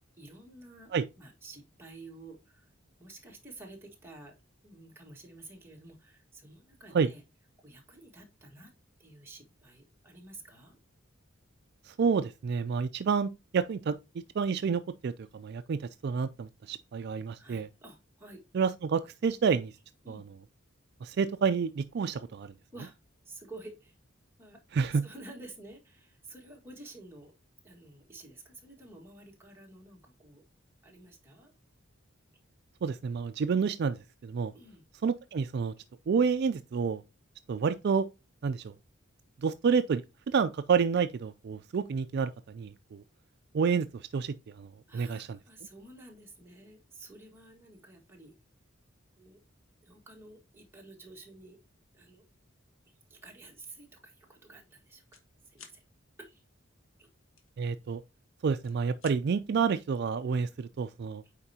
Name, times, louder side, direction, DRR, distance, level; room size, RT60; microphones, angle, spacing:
voice 1, 0.2-2.7 3.0-4.3 4.6-7.2 7.6-8.7 9.0-10.8 17.4-18.4 20.0-20.3 22.7-23.0 23.2-23.9 24.4-24.6 24.9-27.3 27.6-30.4 30.8-31.5 34.5-34.8 35.8-35.9 44.9-48.3 49.2-49.4 49.8-51.6 51.9-52.2 52.9-55.0 55.4-55.8 56.2-56.4 57.0-57.1 61.2-61.3, right 2 dB, 10° right, 1.6 m, -51 dB
voice 2, 11.9-14.0 14.4-17.7 18.5-19.7 20.1-20.2 21.0-22.5 24.7-25.0 32.8-34.0 34.2-34.5 35.0-35.7 36.1-37.0 37.5-38.1 38.4-38.7 39.4-43.0 43.5-45.4 57.6-58.0 58.4-61.2, right 6 dB, 55° right, 0.4 m, -29 dB
sound 1, 53.2-53.5 53.9-54.1 54.3-55.3 55.5-55.8 57.4-58.2 58.5-59.2, left 6 dB, 85° left, 1.3 m, -54 dB
8.7 x 4.4 x 2.8 m
head